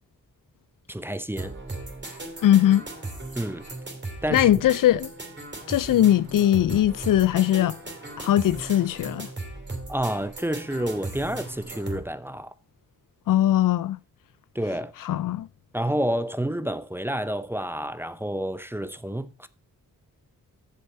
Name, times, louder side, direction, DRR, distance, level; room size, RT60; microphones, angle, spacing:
voice 1, 0.9-1.5 3.3-3.6 4.2-4.5 9.9-12.5 14.5-14.9 15.7-19.5, right 1 dB, 5° right, 0.6 m, -29 dB
sound 1, 1.4-12.0, right 2 dB, 30° right, 3.2 m, -37 dB
voice 2, 2.4-2.8 4.3-5.1 5.7-7.8 8.2-9.3 13.3-14.0 15.0-15.5, left 12 dB, 75° left, 0.5 m, -20 dB
7.6 x 7.1 x 5.4 m
cardioid pair, 85°, 33 cm